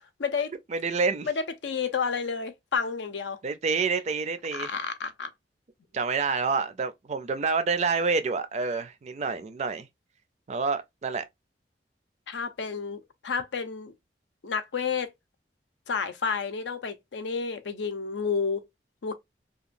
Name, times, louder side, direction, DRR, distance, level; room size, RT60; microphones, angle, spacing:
voice 1, 0.2-0.5 1.2-3.4 4.5-5.3 12.3-13.9 14.4-15.1 15.9-18.6 19.0-19.1, left 5 dB, 85° left, 0.5 m, -30 dB
voice 2, 0.7-1.3 3.4-4.7 5.9-9.9 10.5-11.2, right 4 dB, 40° right, 0.4 m, -28 dB
2.9 x 2.3 x 2.4 m
head